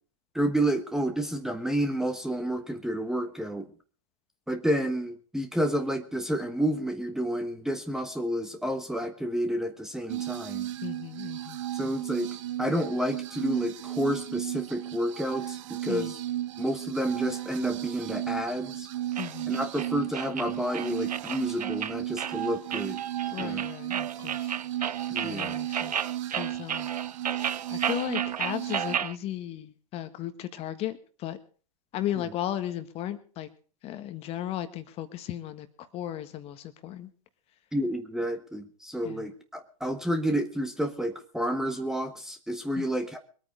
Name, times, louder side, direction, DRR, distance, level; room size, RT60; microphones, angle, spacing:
voice 1, 0.3-3.7 4.5-10.7 11.7-12.3 12.6-16.2 16.6-18.9 19.5-23.0 23.4-23.7 25.1-25.6 32.2-32.3 37.7-43.2, right 1 dB, ahead, 7 dB, 1.3 m, -30 dB
sound 1, 10.1-29.0, right 13 dB, 55° right, 1.4 m, -34 dB
voice 2, 10.8-11.6 15.9-16.1 19.2-19.5 23.3-24.5 25.2-25.9 26.3-26.9 27.7-31.0 31.2-31.4 31.9-33.5 33.8-35.7 35.9-37.1 39.0-39.2 42.8-42.9, left 12 dB, 30° left, 11 dB, 1.5 m, -35 dB
sound 2, 19.2-29.2, right 8 dB, 85° right, 0.6 m, -33 dB
22.5 x 9.0 x 4.9 m, 0.40 s
hypercardioid pair, 120°, 20 cm